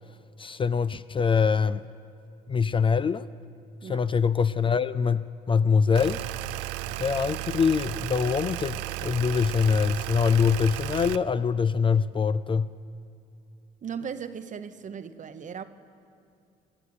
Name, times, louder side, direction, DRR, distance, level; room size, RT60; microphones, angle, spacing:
voice 1, 0.4-1.8 2.5-3.2 3.8-6.2 7.0-12.7, left 6 dB, 30° left, 0.4 m, -24 dB
sound 1, 6.0-11.2, right 17 dB, 80° right, 0.4 m, -34 dB
voice 2, 13.8-15.6, right 7 dB, 45° right, 0.9 m, -37 dB
21.0 x 8.2 x 8.1 m
supercardioid pair, 70°, 19 cm